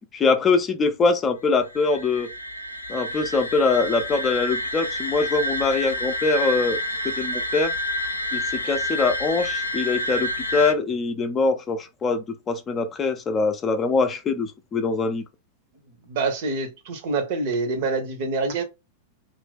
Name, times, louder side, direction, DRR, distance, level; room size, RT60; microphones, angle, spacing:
voice 1, 0.1-2.3 2.9-6.8 7.0-7.7 8.3-15.2, left 4 dB, 25° left, 0.5 m, -23 dB
sound 1, 1.6-10.7, equal, 90° left, 0.5 m, -28 dB
voice 2, 16.1-18.6, right 3 dB, 55° right, 0.8 m, -26 dB
2.9 x 2.6 x 3.3 m
figure-of-eight pair, 95°, 0 cm